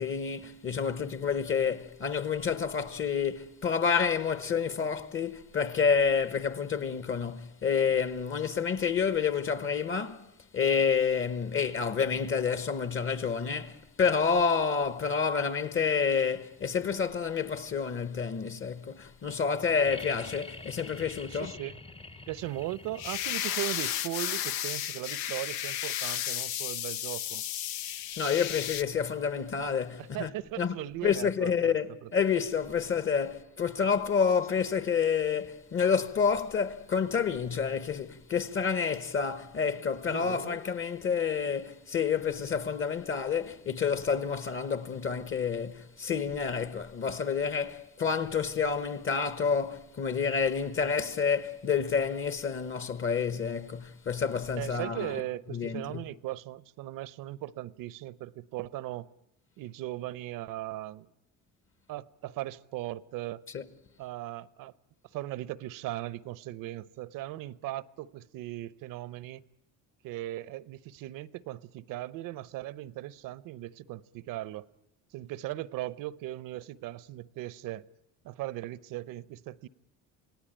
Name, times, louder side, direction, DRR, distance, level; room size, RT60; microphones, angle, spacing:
voice 1, 0.0-21.6 28.2-30.3 30.6-30.8 31.0-31.9 32.1-55.2 55.5-56.0 63.5-63.6, left 6 dB, 35° left, 1.3 m, -29 dB
sound 1, 19.8-23.6 25.3-25.4, left 3 dB, 15° left, 0.8 m, -46 dB
voice 2, 21.3-21.8 22.3-27.4 30.0-32.1 40.1-40.6 54.6-59.1 59.6-61.1 61.9-63.4 64.0-64.7 65.1-69.4 70.0-74.7 75.1-77.9 78.2-79.7, right 15 dB, 70° right, 0.9 m, -38 dB
sound 2, 23.0-28.8, left 11 dB, 80° left, 1.0 m, -33 dB
28.0 x 18.0 x 9.0 m
cardioid pair, 120°, 34 cm